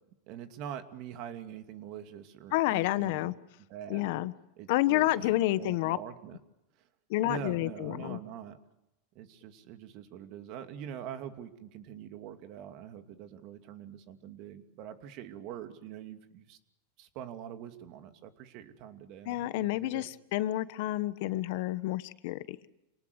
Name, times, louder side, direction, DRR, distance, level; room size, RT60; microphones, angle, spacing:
voice 1, 0.3-3.3 3.7-4.1 4.6-6.4 6.8-6.9 7.2-8.6 9.1-16.6 17.0-20.1, right 9 dB, 55° right, 8 dB, 2.6 m, -44 dB
voice 2, 2.5-3.3 3.9-4.3 4.7-6.0 7.1-8.2 19.3-22.6, left 16 dB, 65° left, 14 dB, 1.2 m, -29 dB
27.5 x 19.0 x 8.1 m, 0.91 s
supercardioid pair, 120°, 0 cm